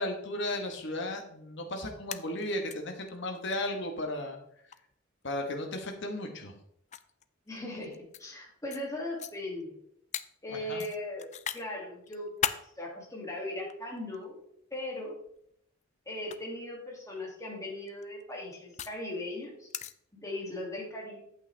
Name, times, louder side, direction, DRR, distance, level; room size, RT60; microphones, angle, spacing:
voice 1, 0.0-4.4 5.2-6.5 10.5-10.8, left 1 dB, 65° left, 3 dB, 1.4 m, -35 dB
sound 1, 1.9-2.7 3.1-3.2 3.5-3.6 4.7-4.9 6.0-6.1 6.9-8.3 8.7-8.8 9.2-9.3 10.1-10.3 10.8-11.6 12.0-12.6 13.5-14.2 15.3-15.5 16.2-16.4 17.7-19.0 19.7-19.9, left 9 dB, 35° left, 0.4 m, -36 dB
voice 2, 7.5-9.8 10.4-14.4 14.7-15.2 16.1-19.7 20.1-21.2, left 1 dB, 15° left, -2 dB, 2.4 m, -38 dB
8.7 x 8.1 x 3.4 m, 0.71 s
head